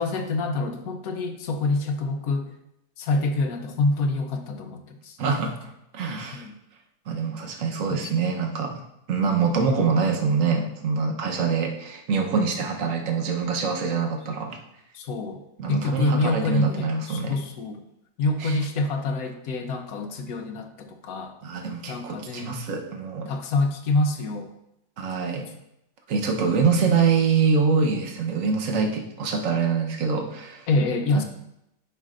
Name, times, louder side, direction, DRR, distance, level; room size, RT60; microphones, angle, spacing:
voice 1, 0.0-2.5 3.0-5.2 6.3-6.5 7.9-8.1 14.3-14.4 14.9-15.4 15.7-17.8 18.2-21.3 21.9-22.6 23.3-24.5 30.7-31.2, left 2 dB, 65° left, 6 dB, 1.2 m, -26 dB
voice 2, 5.2-6.5 7.1-8.8 9.1-14.6 15.6-17.4 18.4-18.6 21.4-23.3 25.0-25.5 26.1-30.7, right 5 dB, 55° right, 2 dB, 1.3 m, -25 dB
11.0 x 5.7 x 2.5 m, 0.82 s
omnidirectional pair, 1.9 m